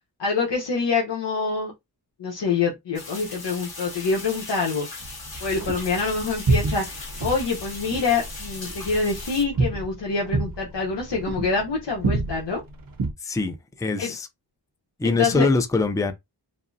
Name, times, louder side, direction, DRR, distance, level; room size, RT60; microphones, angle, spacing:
voice 1, 0.2-1.7 2.2-4.9 5.4-12.6 14.0-14.1 15.0-15.5, left 4 dB, 75° left, 1.0 m, -26 dB
sound 1, 2.9-9.4, left 3 dB, 60° left, 1.9 m, -38 dB
sound 2, 5.0-13.1, right 3 dB, 55° right, 0.7 m, -29 dB
voice 2, 13.2-14.3 15.0-16.1, left 3 dB, 10° left, 0.5 m, -23 dB
5.1 x 2.0 x 2.7 m
wide cardioid pair, 95°, 42 cm